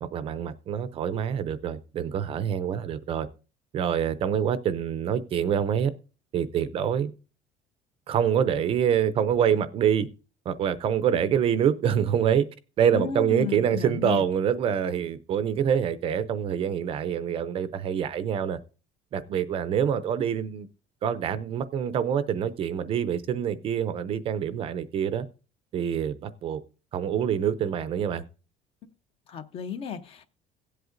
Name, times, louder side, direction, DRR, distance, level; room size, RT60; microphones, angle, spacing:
voice 1, 0.0-3.3 3.7-5.9 6.3-7.1 8.1-10.1 10.5-12.5 12.8-18.6 19.1-20.7 21.0-25.3 25.7-26.6 26.9-28.2, right 8 dB, 35° right, 0.5 m, -26 dB
voice 2, 12.9-14.2 29.3-30.3, left 7 dB, 35° left, 0.7 m, -34 dB
17.5 x 7.9 x 2.5 m
cardioid pair, 170°, 16 cm